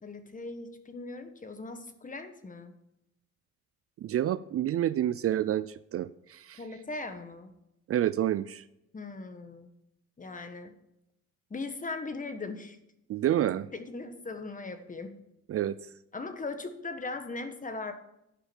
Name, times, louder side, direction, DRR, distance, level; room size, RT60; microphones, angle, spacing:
voice 1, 0.0-2.7 6.6-7.5 8.9-9.7 10.2-10.7 11.5-12.8 13.7-15.2 16.1-17.9, left 3 dB, 25° left, 8 dB, 1.4 m, -39 dB
voice 2, 4.0-6.6 7.9-8.6 13.1-13.7 15.5-15.8, right 12 dB, 50° right, 16 dB, 0.4 m, -28 dB
11.0 x 5.6 x 7.2 m, 0.83 s
cardioid pair, 90°, 30 cm